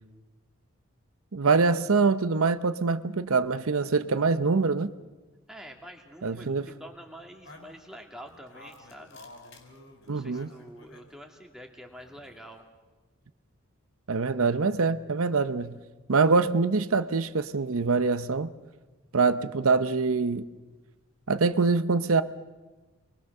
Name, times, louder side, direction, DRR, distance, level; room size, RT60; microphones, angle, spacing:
voice 1, 1.3-4.9 6.2-6.7 10.1-10.5 14.1-15.8 16.1-18.5 19.1-20.5 21.3-22.2, right 4 dB, 75° right, 0.7 m, -24 dB
voice 2, 5.5-9.2 10.0-12.6, equal, ahead, 2.4 m, -47 dB
sound 1, 7.4-11.1 11.9-12.6, left 2 dB, 55° left, 4.6 m, -51 dB
28.0 x 21.5 x 6.7 m
head